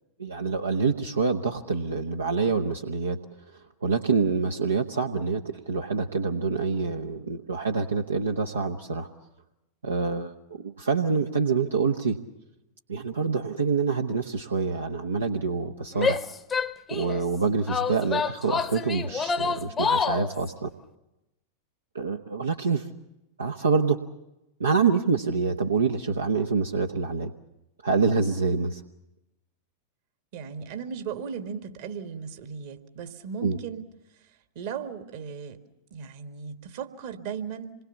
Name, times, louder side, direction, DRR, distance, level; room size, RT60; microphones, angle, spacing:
voice 1, 0.2-3.2 3.5-9.1 9.8-12.2 12.9-16.3 16.9-20.7 21.9-22.9 23.4-24.0 24.6-27.3 27.8-28.8 33.4-33.6, right 4 dB, 75° right, 4 dB, 1.0 m, -26 dB
Female speech woman speaking / Yell, 15.9-17.2 17.7-20.3, left 5 dB, 20° left, 0.9 m, -27 dB
voice 2, 30.3-33.9 34.5-35.6 35.9-37.7, right 7 dB, 55° right, 8 dB, 1.8 m, -36 dB
27.0 x 21.0 x 7.1 m, 0.95 s
figure-of-eight pair, 90°, 0 cm